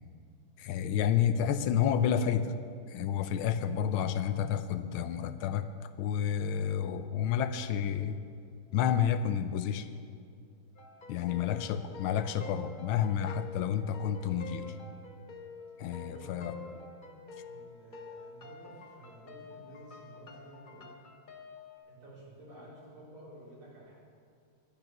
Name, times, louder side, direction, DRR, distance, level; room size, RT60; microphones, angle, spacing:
voice 1, 0.6-2.5 2.9-5.7 6.0-8.2 8.7-9.9 11.1-14.7 15.8-16.5, left 8 dB, 80° left, 11 dB, 1.4 m, -30 dB
sound 1, 10.7-21.8, left 3 dB, 55° left, 0.5 m, -48 dB
voice 2, 16.0-16.8 17.4-20.9 21.9-24.0, right 1 dB, 80° right, -6 dB, 4.2 m, -52 dB
11.0 x 10.5 x 6.0 m, 2.3 s
omnidirectional pair, 2.3 m